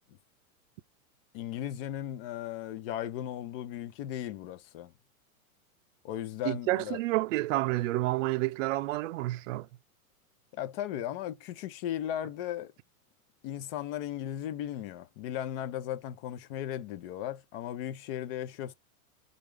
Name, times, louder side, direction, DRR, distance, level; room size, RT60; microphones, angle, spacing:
voice 1, 1.3-4.9 6.0-7.0 10.5-12.7 13.4-18.7, left 11 dB, 40° left, 0.6 m, -36 dB
voice 2, 6.4-9.7, right 18 dB, 60° right, 0.5 m, -29 dB
4.7 x 2.5 x 3.2 m
hypercardioid pair, 135°, 44 cm